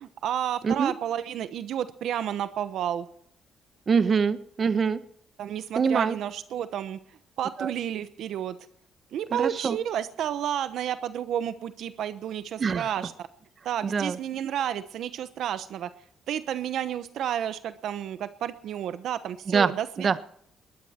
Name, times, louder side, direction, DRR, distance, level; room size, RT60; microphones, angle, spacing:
voice 1, 0.0-3.1 5.4-7.0 7.4-8.6 9.1-13.3 13.6-15.9 16.3-20.2, right 10 dB, 75° right, 12 dB, 1.0 m, -31 dB
voice 2, 3.9-5.0 5.8-6.2 7.6-7.7 9.3-9.8 12.6-12.9 13.8-14.2 19.5-19.7 20.0-20.2, right 6 dB, 45° right, 12 dB, 1.2 m, -24 dB
21.0 x 15.5 x 4.4 m, 0.68 s
cardioid pair, 90°, 0 cm